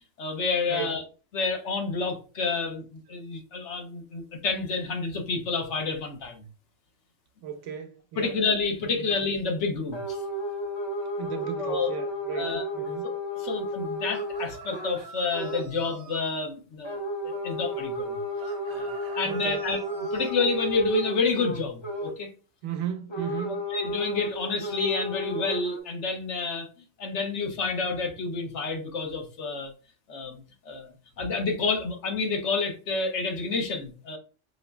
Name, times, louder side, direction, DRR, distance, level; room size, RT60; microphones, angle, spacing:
voice 1, 0.2-1.0 1.3-6.4 8.2-10.2 11.6-11.9 12.3-12.7 13.3-17.0 17.2-18.2 18.7-19.8 20.1-22.3 23.7-26.7 27.0-29.7 30.1-34.2, left 4 dB, 75° left, 1.2 m, -29 dB
voice 2, 0.7-1.1 7.4-8.4 8.9-9.1 11.2-13.1 19.2-19.7 22.6-23.6, right 8 dB, 85° right, 1.0 m, -36 dB
sound 1, 9.9-15.0 15.3-15.7 16.8-22.2 23.1-25.8, equal, 35° left, 0.5 m, -33 dB
sound 2, 14.0-16.3 18.4-20.4, right 5 dB, 55° right, 0.7 m, -45 dB
5.1 x 3.0 x 2.2 m
omnidirectional pair, 1.2 m